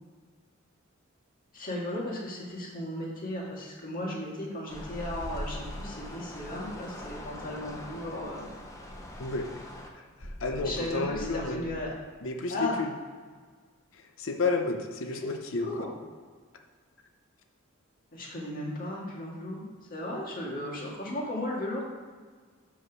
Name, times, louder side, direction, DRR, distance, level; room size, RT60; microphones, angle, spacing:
voice 1, 1.5-8.5 10.6-12.0 12.5-12.8 15.6-15.9 18.1-21.8, left 1 dB, 45° left, -3 dB, 2.1 m, -35 dB
sound 1, 4.7-6.0 6.9-8.1 8.8-9.5 10.2-11.8, equal, 90° left, 1.5 m, -42 dB
sound 2, 4.7-9.9, left 1 dB, 15° left, 0.9 m, -44 dB
voice 2, 9.2-9.6 9.9-11.6 12.2-12.9 13.9-15.7, left 3 dB, 70° left, 4 dB, 0.8 m, -31 dB
5.7 x 5.5 x 6.3 m, 1.5 s
head